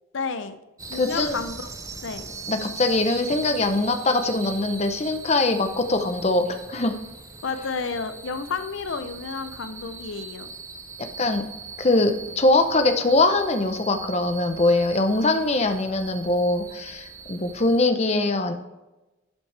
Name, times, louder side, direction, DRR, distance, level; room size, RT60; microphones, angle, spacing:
voice 1, 0.1-0.6 0.9-1.7 2.0-2.2 7.4-10.5, left 4 dB, 70° left, 10 dB, 0.6 m, -31 dB
sound 1, 0.8-17.8, right 4 dB, 15° right, 0.7 m, -40 dB
voice 2, 0.9-1.4 2.5-6.9 11.2-11.4 11.8-18.5, left 2 dB, 35° left, 7 dB, 0.7 m, -22 dB
12.0 x 5.7 x 3.3 m, 1.0 s
head